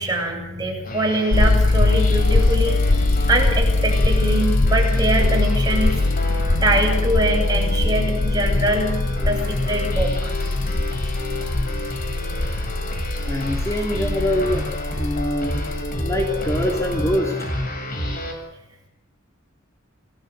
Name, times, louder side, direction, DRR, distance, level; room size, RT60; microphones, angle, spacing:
voice 1, 0.0-5.9 6.6-10.3, right 1 dB, 20° right, 0 dB, 7.8 m, -23 dB
sound 1, 0.8-18.3, left 1 dB, 45° left, 6.4 m, -30 dB
sound 2, 1.3-17.2, left 2 dB, 65° left, 1.0 m, -22 dB
voice 2, 13.3-14.7 14.9-15.6 16.0-17.4, left 1 dB, 15° left, 0 dB, 3.1 m, -24 dB
29.0 x 19.0 x 8.0 m, 0.88 s
head